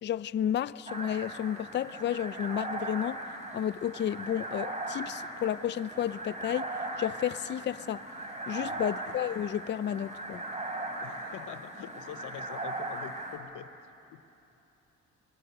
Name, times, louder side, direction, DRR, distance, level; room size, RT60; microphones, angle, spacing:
voice 1, 0.0-3.2 3.5-8.1 8.5-10.4, left 10 dB, 40° left, 0.4 m, -32 dB
sound 1, 0.9-13.4, right 2 dB, 25° right, 3.3 m, -38 dB
voice 2, 8.6-8.9 11.0-13.8 14.0-14.2, left 11 dB, 85° left, 0.9 m, -45 dB
23.0 x 20.5 x 6.6 m
cardioid pair, 90°, 30 cm